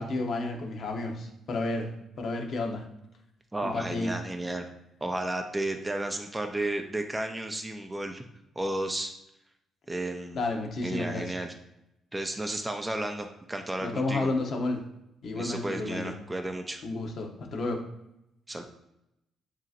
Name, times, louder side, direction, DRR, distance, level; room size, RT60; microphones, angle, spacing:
voice 1, 0.0-1.9 2.2-2.8 3.6-4.1 10.3-11.2 13.8-14.8 15.2-16.1 16.8-17.8, left 2 dB, 60° left, 2 dB, 1.0 m, -31 dB
voice 2, 3.5-4.7 5.0-8.2 8.6-9.1 9.9-10.4 10.8-11.5 12.1-14.3 15.3-16.8 18.5-18.6, right 1 dB, 10° right, 5 dB, 0.5 m, -33 dB
7.3 x 2.9 x 2.5 m, 0.86 s
cardioid pair, 90°, 0 cm